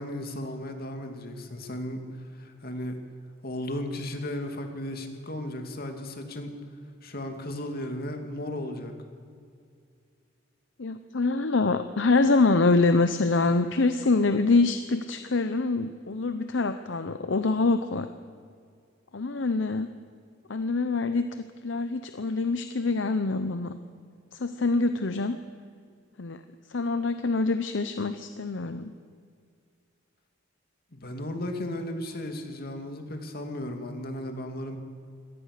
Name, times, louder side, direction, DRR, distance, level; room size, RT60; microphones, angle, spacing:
voice 1, 0.0-3.0 3.4-6.5 7.0-8.9 30.9-34.8, left 1 dB, 50° left, 5 dB, 2.5 m, -35 dB
voice 2, 10.8-18.1 19.1-19.9 20.5-23.8 24.3-25.4 26.2-26.4 26.7-28.9, left 3 dB, 70° left, 9 dB, 0.8 m, -25 dB
24.0 x 18.5 x 6.7 m, 2.2 s
head